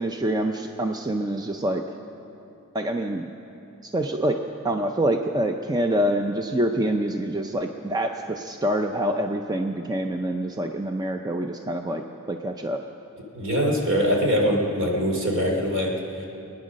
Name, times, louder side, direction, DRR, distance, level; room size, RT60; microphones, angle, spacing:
voice 1, 0.0-1.8 2.7-3.3 3.9-4.4 4.6-12.0 12.3-12.8, right 1 dB, 20° right, 4 dB, 0.5 m, -26 dB
voice 2, 13.3-15.9 16.2-16.3, equal, 60° right, 0 dB, 2.8 m, -23 dB
23.5 x 9.7 x 6.4 m, 2.9 s
head